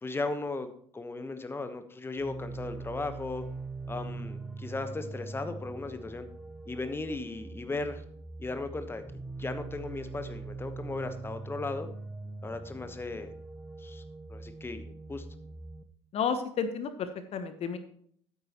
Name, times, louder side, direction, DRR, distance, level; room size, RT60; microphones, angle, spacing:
voice 1, 0.0-3.4 3.9-6.3 6.7-8.0 8.4-9.0 9.4-11.9 12.4-13.3 13.8-14.0 14.3-15.2, left 3 dB, 15° left, 9 dB, 1.2 m, -36 dB
sound 1, 2.1-15.8, right 3 dB, 5° right, 1.0 m, -42 dB
voice 2, 16.1-17.8, left 6 dB, 45° left, 10 dB, 1.1 m, -31 dB
13.0 x 9.4 x 3.1 m, 0.63 s
figure-of-eight pair, 60°, 15 cm